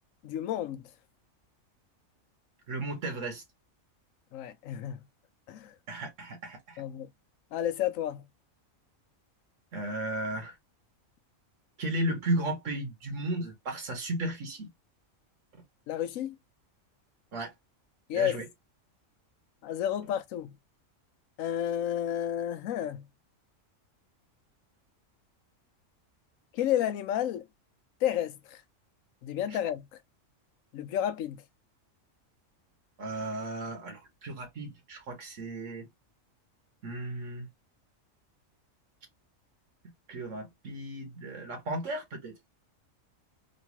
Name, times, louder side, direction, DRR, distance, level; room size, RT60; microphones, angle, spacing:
voice 1, 0.2-0.8 4.3-5.0 5.5-5.7 6.8-7.1 7.5-8.2 15.9-16.4 18.1-18.4 19.6-20.5 21.4-23.1 26.5-27.5 28.0-28.6 29.2-29.8 30.7-31.4, left 10 dB, 80° left, 1.0 m, -31 dB
voice 2, 2.7-3.4 5.9-6.8 9.7-10.6 11.8-14.7 17.3-17.5 18.1-18.5 33.0-35.9 36.8-37.5 40.1-42.4, right 1 dB, 70° right, 1.3 m, -34 dB
3.1 x 3.0 x 2.8 m
omnidirectional pair, 1.4 m